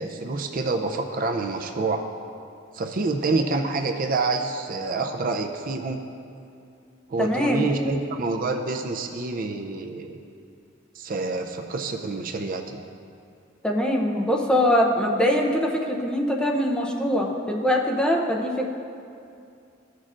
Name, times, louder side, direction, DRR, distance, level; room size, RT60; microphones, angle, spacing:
voice 1, 0.0-2.0 2.7-6.0 7.1-10.1 11.0-12.8, right 3 dB, 45° right, 5 dB, 0.5 m, -27 dB
voice 2, 7.2-7.9 13.6-18.7, equal, 5° left, -1 dB, 0.6 m, -23 dB
14.5 x 6.5 x 2.5 m, 2.5 s
head